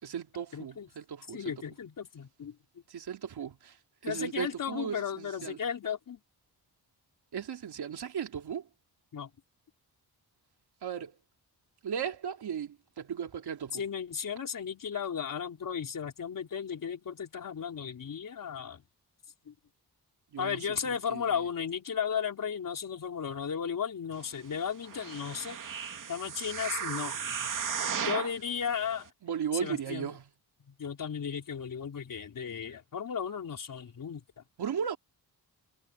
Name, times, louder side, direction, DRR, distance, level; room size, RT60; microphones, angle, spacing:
voice 1, 0.0-1.4 2.9-3.8 4.0-5.6 7.3-8.7 10.8-11.2 11.8-13.8 20.3-20.6 21.1-21.2 29.2-30.2 34.6-35.0, right 8 dB, 80° right, 3.2 m, -36 dB
voice 2, 0.5-0.9 1.3-2.6 4.0-6.2 9.1-9.3 13.7-18.8 19.5-19.6 20.4-25.6 26.1-27.2 28.0-29.1 29.5-30.1 30.7-34.2, left 7 dB, 55° left, 4.1 m, -35 dB
sound 1, 24.8-28.4 29.0-29.1, right 7 dB, 55° right, 3.1 m, -35 dB
wide cardioid pair, 170°, 38 cm